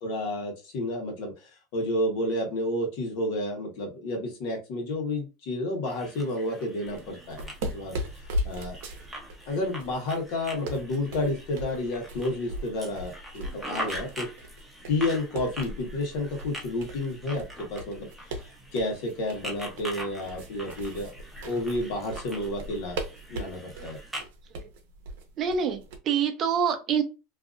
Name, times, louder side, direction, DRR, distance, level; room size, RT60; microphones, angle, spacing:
voice 1, 0.0-8.0 8.4-8.8 9.5-14.3 14.9-18.1 18.7-21.1 21.4-23.0 23.3-24.0, left 1 dB, 70° left, 1.2 m, -30 dB
sound 1, 5.9-24.2, equal, 5° right, 0.8 m, -43 dB
sound 2, 6.9-26.0, equal, 80° right, 0.7 m, -39 dB
voice 2, 25.4-27.0, right 7 dB, 40° right, 0.6 m, -26 dB
2.6 x 2.5 x 2.4 m
supercardioid pair, 130°, 0 cm